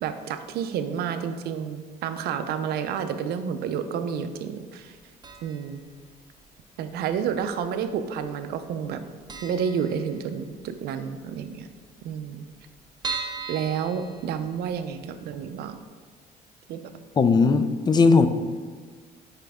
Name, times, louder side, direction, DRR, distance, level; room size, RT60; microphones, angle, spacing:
voice 1, 0.0-4.9 5.4-5.8 6.8-9.0 9.4-11.7 12.0-12.4 13.5-15.8 16.7-16.8, right 7 dB, 70° right, 9 dB, 0.5 m, -30 dB
sound 1, 5.2-5.8 6.0-6.1 7.1-7.8 8.0-8.2 8.5-8.6 8.9-9.0 9.3-10.6 11.0-11.1 11.3-11.4 11.6-11.7 12.2-14.9 15.3-15.4 15.8-15.9, right 4 dB, 25° right, 0.6 m, -37 dB
voice 2, 17.2-18.3, left 4 dB, 25° left, 10 dB, 0.4 m, -18 dB
5.6 x 5.1 x 3.5 m, 1.5 s
cardioid pair, 110°, 17 cm